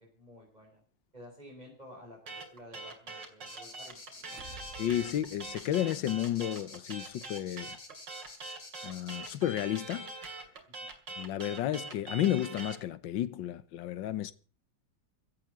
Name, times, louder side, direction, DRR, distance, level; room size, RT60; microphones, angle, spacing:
voice 1, 0.1-0.8 1.1-4.4 10.8-10.9, left 1 dB, 20° right, 4.7 m, -52 dB
sound 1, 2.3-12.8, right 3 dB, 75° right, 3.2 m, -43 dB
sound 2, 3.5-9.4, left 3 dB, 65° left, 4.8 m, -49 dB
sound 3, 4.1-6.1, right 2 dB, 45° right, 2.2 m, -52 dB
voice 2, 4.8-7.8 8.8-10.1 11.2-14.3, left 12 dB, 85° left, 1.6 m, -32 dB
16.0 x 8.4 x 7.8 m
omnidirectional pair, 2.0 m